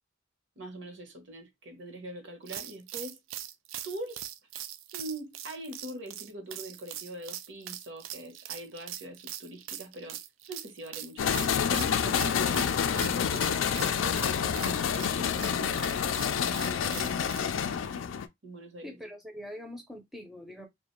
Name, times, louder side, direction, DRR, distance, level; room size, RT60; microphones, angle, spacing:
voice 1, 0.6-3.2 3.8-4.2 4.9-10.2 10.5-16.0 16.6-17.4 18.4-19.0, right 1 dB, 65° right, 0.8 m, -43 dB
sound 1, 2.5-17.4, right 12 dB, 85° right, 0.3 m, -42 dB
sound 2, 11.2-18.3, left 7 dB, 75° left, 0.3 m, -28 dB
voice 2, 18.8-20.7, left 1 dB, ahead, 0.5 m, -43 dB
2.4 x 2.2 x 3.0 m
head